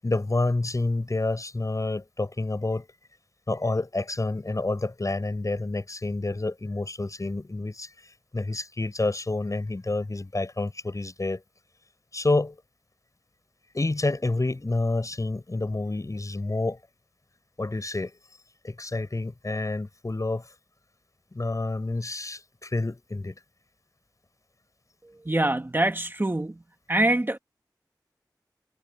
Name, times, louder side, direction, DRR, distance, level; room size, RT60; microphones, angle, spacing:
voice 1, 0.0-2.9 3.5-7.9 8.3-11.4 12.1-12.5 13.7-16.8 17.6-18.1 18.6-20.4 21.3-23.3, left 2 dB, 50° left, 7.5 m, -28 dB
voice 2, 25.2-26.6 26.9-27.4, right 1 dB, 30° right, 1.7 m, -24 dB
wide cardioid pair, 65°, 7 cm